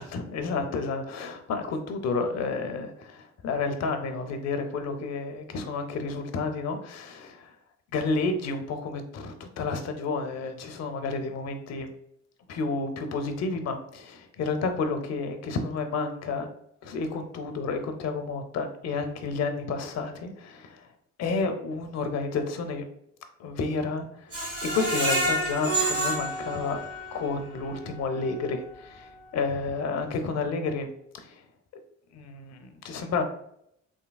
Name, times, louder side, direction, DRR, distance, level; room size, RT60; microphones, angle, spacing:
voice 1, 0.0-7.6 7.9-11.9 12.5-16.5 16.8-20.9 21.2-22.8 23.4-26.8 27.1-30.9 31.1-31.4 32.1-33.2, left 4 dB, 60° left, 7 dB, 0.5 m, -31 dB
Screech, 24.3-27.3 27.7-27.8 28.2-28.3, right 1 dB, 50° right, 1.0 m, -28 dB
3.3 x 2.6 x 2.2 m, 0.74 s
cardioid pair, 90°, 30 cm